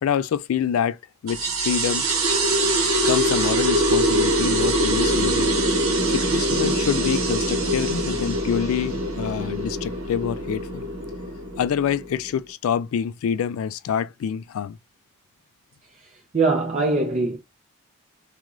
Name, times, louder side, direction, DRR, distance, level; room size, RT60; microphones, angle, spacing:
voice 1, 0.0-1.0 1.2-2.0 3.0-5.5 6.1-10.8 11.6-14.8, left 8 dB, 85° left, 0.3 m, -26 dB
sound 1, 1.3-12.3, right 1 dB, 85° right, 1.0 m, -23 dB
voice 2, 16.0-17.4, right 3 dB, 35° right, 0.4 m, -23 dB
3.0 x 2.4 x 2.4 m
head